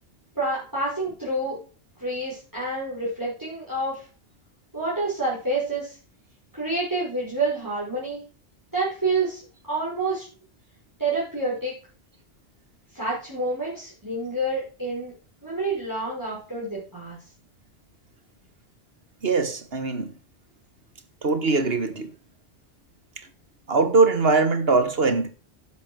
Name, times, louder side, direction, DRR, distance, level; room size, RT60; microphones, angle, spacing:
voice 1, 0.4-1.6 2.0-4.1 4.7-6.0 6.5-8.2 8.7-9.4 9.7-10.3 11.0-11.7 12.9-15.1 15.4-17.2, right 2 dB, 15° right, 5.5 m, -28 dB
voice 2, 19.2-20.1 21.2-22.1 23.7-25.3, right 3 dB, 65° right, 1.8 m, -21 dB
10.5 x 7.9 x 6.3 m
omnidirectional pair, 1.1 m